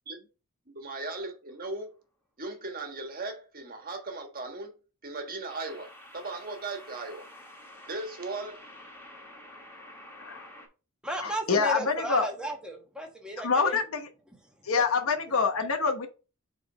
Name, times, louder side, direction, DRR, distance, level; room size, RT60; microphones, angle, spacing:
voice 1, 0.7-1.9 2.4-4.7 5.0-7.3 7.9-8.6, right 3 dB, 45° right, 1.4 m, -37 dB
sound 1, 1.5-1.8 5.5-10.7, left 1 dB, 10° left, 1.7 m, -49 dB
voice 2, 10.2-10.5 11.2-12.3 13.4-14.1 14.6-16.1, left 4 dB, 85° left, 1.1 m, -26 dB
voice 3, 11.0-13.8 14.6-14.7, equal, 5° right, 1.4 m, -35 dB
5.1 x 4.0 x 5.0 m
head